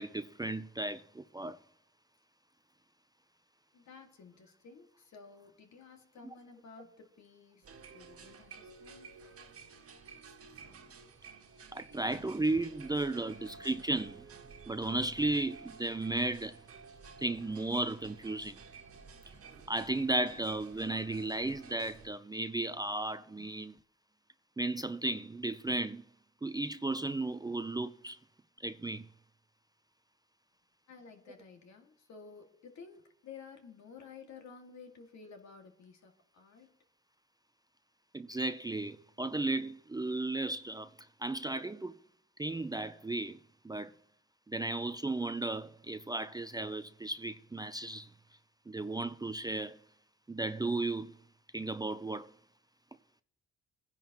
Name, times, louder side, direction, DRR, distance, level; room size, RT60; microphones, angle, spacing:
voice 1, 0.0-1.6 11.7-14.3 14.7-16.6 17.2-18.6 19.7-23.7 24.6-26.0 26.4-28.2 28.6-29.1 38.1-40.9 41.2-42.0 42.4-43.4 43.6-43.9 44.5-48.1 48.7-49.8 50.3-51.2 51.5-52.3, right 2 dB, 15° right, 0.5 m, -34 dB
voice 2, 3.7-7.7 7.9-9.1 23.4-23.5 30.9-36.7, left 5 dB, 65° left, 2.2 m, -53 dB
sound 1, 7.6-22.1, right 5 dB, 50° right, 1.6 m, -53 dB
21.0 x 10.0 x 3.0 m
cardioid pair, 90°, 30 cm